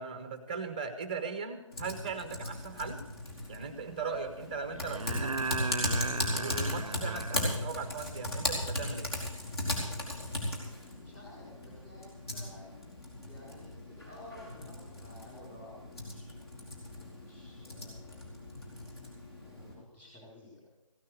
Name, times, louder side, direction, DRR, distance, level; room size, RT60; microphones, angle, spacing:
voice 1, 0.0-3.0 3.5-5.8 6.3-9.1, right 5 dB, 15° right, 9 dB, 0.7 m, -39 dB
Typing, 1.7-19.7, left 1 dB, 50° left, 4.5 m, -37 dB
sound 1, 2.9-3.0 4.7-7.6 9.7-9.8, right 4 dB, 85° right, 0.6 m, -36 dB
voice 2, 10.9-12.7 13.3-16.3 16.8-18.2 19.4-20.6, left 1 dB, 10° left, -7 dB, 4.4 m, -53 dB
16.0 x 9.7 x 6.7 m, 0.98 s
figure-of-eight pair, 160°, 17 cm